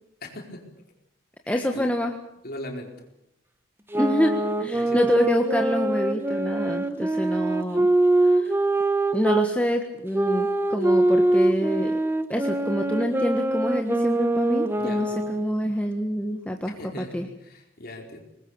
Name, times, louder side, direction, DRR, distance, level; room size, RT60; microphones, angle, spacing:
voice 1, 0.2-0.6 1.4-1.9 2.4-3.0 4.7-5.0 14.8-15.3 16.6-18.2, left 1 dB, 50° left, 2 dB, 4.6 m, -39 dB
voice 2, 1.5-2.1 3.9-7.9 8.2-8.5 9.1-12.0 12.3-17.2, equal, 5° left, 3 dB, 1.4 m, -26 dB
sound 1, 3.9-9.5 10.1-15.6, right 2 dB, 10° right, 0.9 m, -23 dB
25.0 x 20.5 x 7.2 m, 0.79 s
head